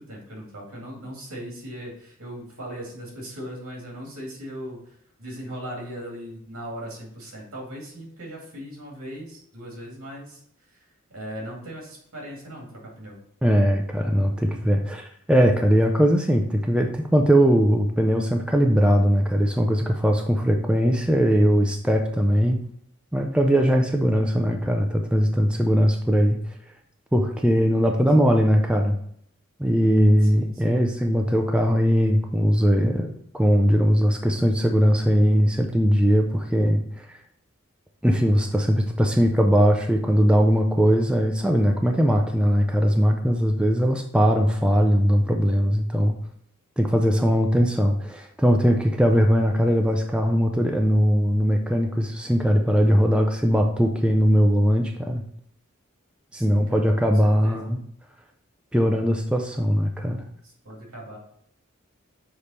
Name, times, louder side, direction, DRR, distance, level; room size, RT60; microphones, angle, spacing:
voice 1, 0.0-4.8 5.2-10.4 11.1-13.2 30.2-30.8 56.3-56.9 57.2-57.6 60.4-61.2, equal, 85° right, -2 dB, 2.3 m, -38 dB
voice 2, 13.4-22.6 23.1-26.4 27.1-29.0 29.6-33.1 33.3-36.8 38.0-46.1 46.8-55.2 56.3-57.8 58.7-60.2, equal, 5° right, 3 dB, 0.4 m, -20 dB
6.8 x 3.2 x 4.2 m, 0.68 s
head